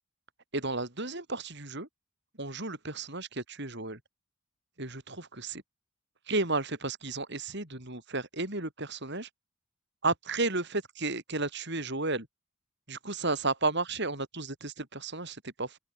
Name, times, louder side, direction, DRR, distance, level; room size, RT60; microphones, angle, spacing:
voice 1, 0.5-1.9 2.4-4.0 4.8-5.6 6.3-9.3 10.0-12.3 12.9-15.8, right 3 dB, 55° right, 6.9 m, -33 dB
head